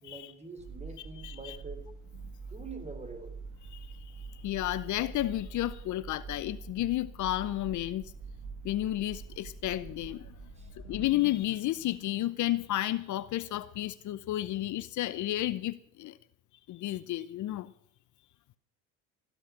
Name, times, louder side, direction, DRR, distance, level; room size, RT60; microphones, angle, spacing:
voice 1, 0.0-1.9 2.5-3.4 10.6-10.7, right 3 dB, 20° right, 7 dB, 4.3 m, -45 dB
sound 1, 0.6-11.1, right 4 dB, 65° right, 2.3 m, -45 dB
voice 2, 1.0-1.6 3.6-8.1 8.6-10.3 10.8-16.2 16.7-17.7, left 15 dB, 55° left, 16 dB, 0.8 m, -32 dB
15.5 x 12.0 x 6.0 m, 0.67 s
supercardioid pair, 80°, 35 cm